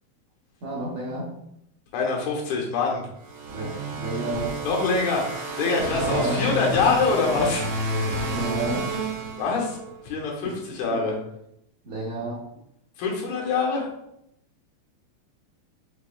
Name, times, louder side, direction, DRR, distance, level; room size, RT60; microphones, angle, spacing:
voice 1, 0.6-1.3 3.5-4.6 6.1-6.4 8.3-8.9 10.4-10.5 11.8-12.4, right 2 dB, 70° right, -6 dB, 1.8 m, -31 dB
voice 2, 1.9-3.1 4.6-7.7 9.4-9.8 10.0-11.2 13.0-13.9, left 4 dB, 85° left, -1 dB, 2.8 m, -24 dB
sound 1, 3.3-9.9, right 1 dB, 90° right, 1.4 m, -30 dB
5.8 x 3.1 x 2.3 m, 0.78 s
omnidirectional pair, 4.2 m